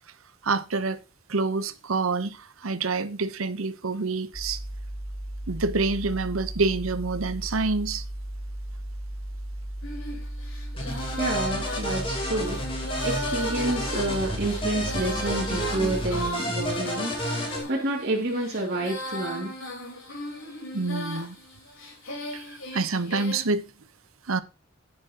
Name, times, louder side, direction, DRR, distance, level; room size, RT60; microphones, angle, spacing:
voice 1, 0.4-1.0 1.3-4.6 5.5-8.0 20.7-21.4 22.3-23.6 24.3-24.4, right 3 dB, 85° right, 0.9 m, -27 dB
sound 1, 4.3-16.3, right 1 dB, 10° left, 4.8 m, -36 dB
Female singing, 9.8-23.4, left 1 dB, 75° left, 4.1 m, -37 dB
sound 2, 10.8-17.6, equal, 25° left, 2.8 m, -31 dB
voice 2, 11.2-12.7 13.0-19.5, right 1 dB, 50° right, 2.6 m, -29 dB
11.5 x 9.7 x 2.9 m
head